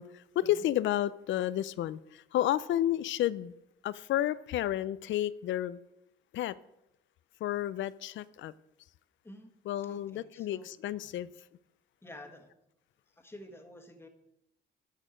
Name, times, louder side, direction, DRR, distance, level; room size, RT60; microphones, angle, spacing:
voice 1, 0.0-3.5 3.8-5.8 6.3-6.6 7.4-8.5 9.7-11.3, left 12 dB, 70° left, 0.5 m, -31 dB
voice 2, 9.8-10.7 11.0-11.1 12.0-12.5 13.2-14.1, left 1 dB, 10° left, 1.6 m, -50 dB
12.5 x 6.6 x 5.1 m
cardioid pair, 90°, 20 cm